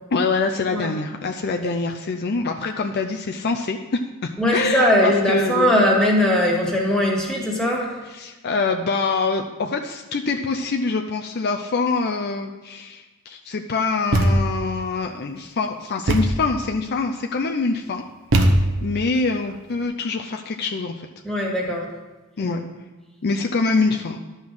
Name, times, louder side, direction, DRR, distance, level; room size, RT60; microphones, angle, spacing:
voice 1, 0.1-5.8 8.1-18.0 18.4-18.5 18.8-21.1 22.4-22.6 23.2-24.2, left 4 dB, 50° left, 4 dB, 0.5 m, -25 dB
voice 2, 4.4-8.0 21.2-21.9 22.4-22.6, left 1 dB, 5° left, -3 dB, 2.1 m, -20 dB
Thump thud, 14.1-14.7 16.1-16.5 18.3-19.0, right 1 dB, 65° right, 1.0 m, -19 dB
11.5 x 5.6 x 6.1 m, 1.2 s
head